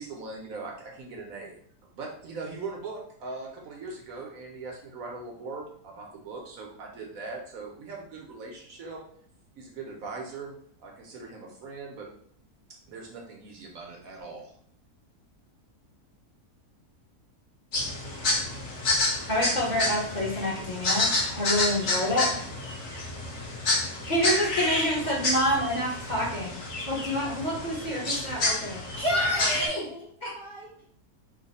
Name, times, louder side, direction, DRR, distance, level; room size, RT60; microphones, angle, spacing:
voice 1, 0.0-1.6 1.9-9.0 9.6-10.5 10.8-12.1 12.9-14.5, right 3 dB, 70° right, 0 dB, 1.1 m, -40 dB
sound 1, 17.7-29.7, left 2 dB, 60° left, 1.3 m, -29 dB
voice 2, 19.3-22.5 24.0-26.5 26.9-29.8 30.2-30.3, equal, 35° left, -6 dB, 0.9 m, -28 dB
voice 3, 29.1-30.1 30.3-30.8, right 1 dB, 45° right, -4 dB, 0.9 m, -42 dB
3.1 x 2.2 x 4.0 m, 0.63 s
omnidirectional pair, 1.6 m